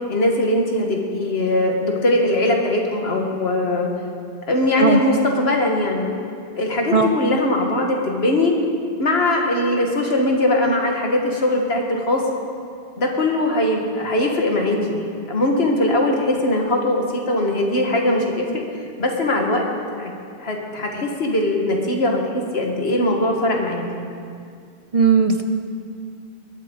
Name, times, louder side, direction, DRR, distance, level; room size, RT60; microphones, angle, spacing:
voice 1, 0.1-3.9 4.5-6.1 6.6-8.5 9.0-12.2 13.0-18.6 19.0-19.7 20.0-20.1 20.4-23.8, left 1 dB, 75° left, 1 dB, 1.9 m, -20 dB
voice 2, 24.9-25.4, right 5 dB, 40° right, 6 dB, 0.7 m, -16 dB
19.0 x 12.5 x 3.9 m, 2.3 s
omnidirectional pair, 1.1 m